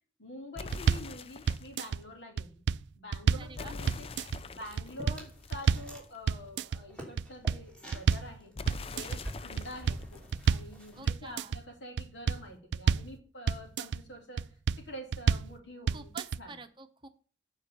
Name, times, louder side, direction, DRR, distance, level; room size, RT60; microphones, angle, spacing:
voice 1, 0.2-2.6 3.0-4.1 4.5-8.5 8.9-14.5 14.8-16.1 16.4-16.5, left 1 dB, 85° left, 2 dB, 3.8 m, -46 dB
sound 1, 0.6-1.8 3.6-6.3 8.6-11.3, left 3 dB, 30° left, 0.4 m, -45 dB
sound 2, 0.7-1.1 1.5-2.0 2.4-3.5 3.9-4.4 4.8-5.2 5.5-5.9 6.3-6.8 7.2-8.3 8.7-9.2 9.6-10.7 11.1-11.6 12.0-13.1 13.5-14.0 14.4-14.8 15.1-15.5 15.9-16.4, right 6 dB, 75° right, 0.3 m, -28 dB
voice 2, 3.4-3.7 10.9-11.6 15.9-17.1, right 3 dB, 25° right, 9 dB, 0.9 m, -47 dB
sound 3, 4.7-6.1 6.4-11.0, equal, 5° left, 2.9 m, -47 dB
9.5 x 5.5 x 6.9 m, 0.41 s
head